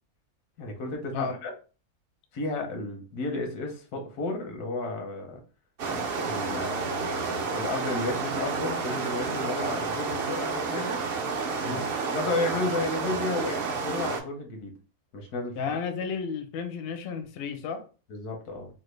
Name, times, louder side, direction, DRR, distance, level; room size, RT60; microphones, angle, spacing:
voice 1, 0.6-1.5 2.3-5.4 5.9-11.0 11.6-14.7 15.1-15.7 18.1-18.7, left 2 dB, 85° left, 3 dB, 1.3 m, -33 dB
sound 1, 5.8-14.2, right 4 dB, 65° right, 0.6 m, -30 dB
voice 2, 15.6-17.8, left 5 dB, 60° left, 6 dB, 0.6 m, -32 dB
3.3 x 2.2 x 3.1 m, 0.36 s
omnidirectional pair, 1.6 m